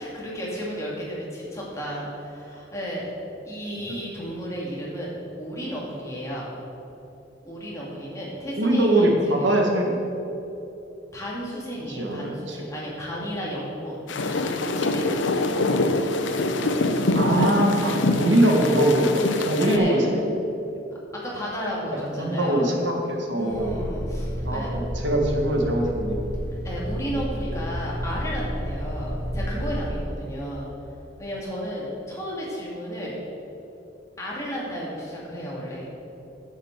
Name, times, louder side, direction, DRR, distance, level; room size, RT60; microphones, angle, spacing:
voice 1, 0.0-3.2 3.4-5.1 5.4-6.5 7.4-9.1 9.4-9.5 11.1-14.0 14.4-15.5 17.3-17.9 19.6-20.2 21.1-22.8 23.3-24.7 26.6-30.7 31.2-33.2 34.2-35.9, equal, 15° left, -5 dB, 2.2 m, -33 dB
voice 2, 8.6-10.0 11.9-12.6 17.1-20.2 21.9-23.8 24.4-26.3, right 1 dB, 75° right, 1 dB, 1.7 m, -22 dB
sound 1, 14.1-19.8, left 2 dB, 85° left, 0.7 m, -24 dB
sound 2, 23.5-29.9, equal, 45° right, 2.1 m, -31 dB
9.8 x 6.5 x 6.7 m, 3.0 s
head